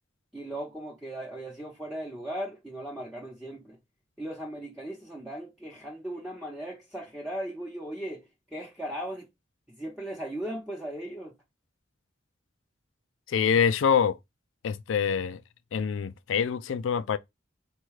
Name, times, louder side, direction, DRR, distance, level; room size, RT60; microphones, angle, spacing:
voice 1, 0.3-3.8 4.2-9.3 9.7-11.4, right 1 dB, ahead, 0.8 m, -37 dB
voice 2, 13.3-14.2 14.6-15.4 15.7-17.2, left 7 dB, 90° left, 0.4 m, -25 dB
4.3 x 2.3 x 4.7 m
head